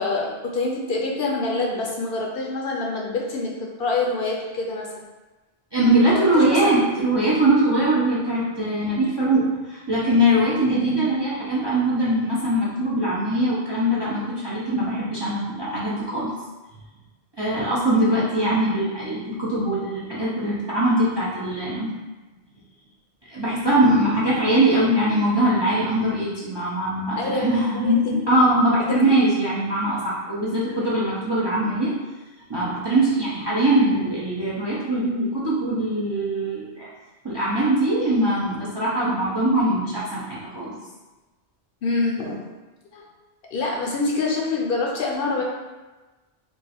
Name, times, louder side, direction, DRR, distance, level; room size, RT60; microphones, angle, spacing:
voice 1, 0.0-5.1 6.1-6.7 27.2-28.3 28.9-29.0 30.6-30.9 41.8-42.4 42.9-43.1 43.5-45.4, left 3 dB, 65° left, -1 dB, 0.7 m, -26 dB
voice 2, 5.7-16.3 17.4-21.9 23.3-31.9 32.5-36.9 37.2-40.7, right 1 dB, 35° right, -8 dB, 0.4 m, -22 dB
2.4 x 2.3 x 4.0 m, 1.2 s
omnidirectional pair, 1.1 m